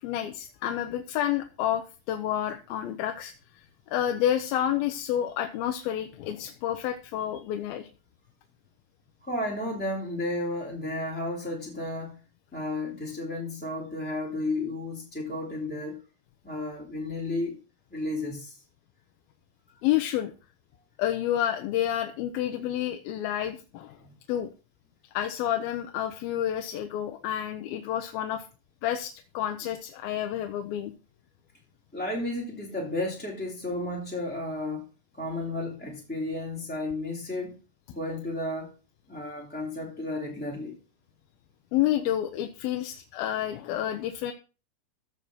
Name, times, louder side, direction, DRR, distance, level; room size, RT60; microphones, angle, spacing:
voice 1, 0.0-7.9 19.8-20.3 21.0-24.0 24.3-24.5 25.1-28.5 28.8-30.9 41.7-44.3, left 11 dB, 85° left, 6 dB, 2.7 m, -29 dB
voice 2, 9.2-12.1 12.5-16.0 16.4-17.6 17.9-18.6 31.9-34.8 35.1-37.6 37.9-38.7 39.1-40.8, left 2 dB, 5° left, -3 dB, 2.4 m, -33 dB
15.0 x 5.6 x 6.2 m, 0.34 s
omnidirectional pair, 4.2 m